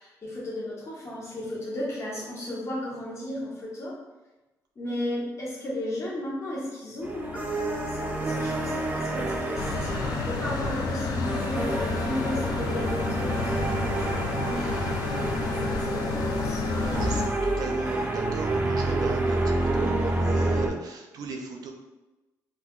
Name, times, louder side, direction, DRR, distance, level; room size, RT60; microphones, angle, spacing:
voice 1, 0.0-3.9 4.8-15.0 15.4-16.6 17.3-17.7, left 1 dB, 45° left, -5 dB, 0.9 m, -35 dB
sound 1, 7.0-20.7, right 2 dB, 25° right, 0.5 m, -29 dB
sound 2, 9.6-17.3, left 4 dB, 75° left, 0.4 m, -30 dB
voice 2, 16.6-19.4 19.8-21.7, right 4 dB, 70° right, 2 dB, 0.5 m, -37 dB
2.5 x 2.2 x 3.5 m, 1.1 s
cardioid pair, 80°, 7 cm